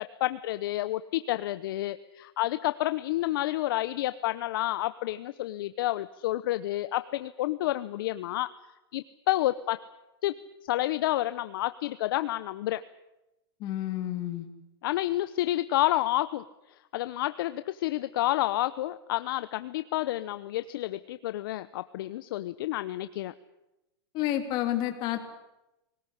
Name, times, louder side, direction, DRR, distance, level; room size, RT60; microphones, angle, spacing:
voice 1, 0.0-8.5 8.9-9.8 10.2-10.4 10.6-12.8 14.8-16.4 16.9-23.3, left 15 dB, 55° left, 13 dB, 0.8 m, -29 dB
voice 2, 13.6-14.5 24.1-25.2, left 13 dB, 35° left, 7 dB, 2.9 m, -30 dB
20.5 x 19.0 x 10.0 m, 0.94 s
supercardioid pair, 160°, 13 cm